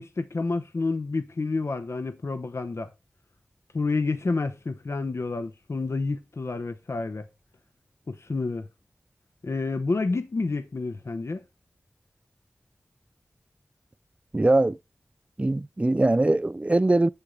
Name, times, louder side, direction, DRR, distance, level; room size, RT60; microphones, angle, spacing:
voice 1, 0.0-2.9 3.7-7.3 8.1-8.7 9.4-11.4, left 3 dB, 65° left, 0.9 m, -29 dB
voice 2, 14.3-14.8 15.4-17.1, right 2 dB, 25° right, 0.4 m, -21 dB
7.1 x 6.9 x 3.9 m
cardioid pair, 45°, 5 cm